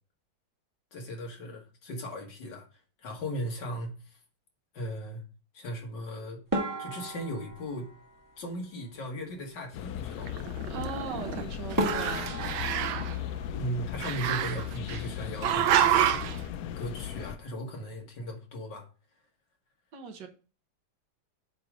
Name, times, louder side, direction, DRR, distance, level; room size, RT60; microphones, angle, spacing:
voice 1, 0.9-2.7 3.0-4.2 4.7-5.2 5.5-6.4 6.8-7.9 8.4-10.5 13.5-16.2 16.8-18.9, equal, 60° left, 2.0 m, -37 dB
sound 1, 6.5-9.0 11.2-11.3 11.8-14.5 14.8-15.6 15.9-16.1 16.4-16.5 17.1-17.4, right 1 dB, 10° right, 1.2 m, -36 dB
sound 2, 9.7-17.4, left 10 dB, 80° left, 0.8 m, -37 dB
Growling, 10.2-11.4 11.7-13.1 14.0-15.0 15.4-16.4, right 10 dB, 90° right, 1.4 m, -28 dB
voice 2, 10.7-12.3 19.9-20.3, right 6 dB, 65° right, 1.4 m, -38 dB
8.0 x 3.1 x 4.9 m
omnidirectional pair, 2.2 m